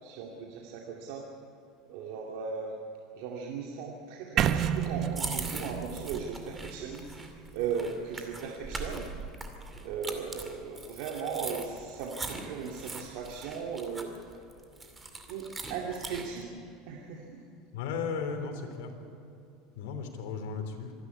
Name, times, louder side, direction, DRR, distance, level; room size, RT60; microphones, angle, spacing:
voice 1, 0.0-1.3 1.9-2.8 3.2-9.1 9.8-14.1 15.3-16.6 16.9-17.4, right 6 dB, 70° right, 0 dB, 2.4 m, -37 dB
sound 1, 4.4-8.3, right 9 dB, 40° right, 1.0 m, -32 dB
sound 2, 5.1-16.4, right 3 dB, 15° right, 2.4 m, -41 dB
voice 2, 17.7-18.9 19.8-20.9, left 5 dB, 75° left, 5 dB, 3.4 m, -35 dB
25.5 x 11.5 x 9.7 m, 2.7 s
supercardioid pair, 135°, 0 cm